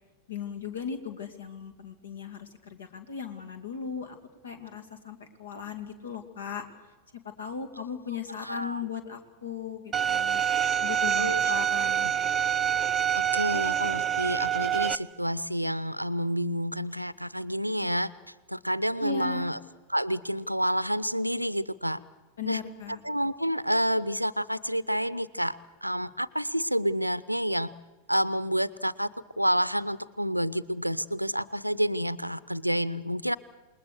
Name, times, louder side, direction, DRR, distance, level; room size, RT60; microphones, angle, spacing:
voice 1, 0.3-4.2 4.4-6.6 7.4-10.4 10.8-12.1 19.0-19.5 22.4-23.0, left 6 dB, 70° left, 8 dB, 2.4 m, -37 dB
voice 2, 8.4-8.9 11.2-11.6 13.3-18.1 18.5-19.6 19.9-22.0 22.4-22.6 23.0-25.6 25.8-27.7 28.1-29.1 29.4-33.4, equal, 90° right, 18 dB, 0.6 m, -29 dB
Bowed string instrument, 9.9-14.9, right 9 dB, 20° right, 0.7 m, -26 dB
27.5 x 20.5 x 6.6 m, 1.2 s
figure-of-eight pair, 90°, 0 cm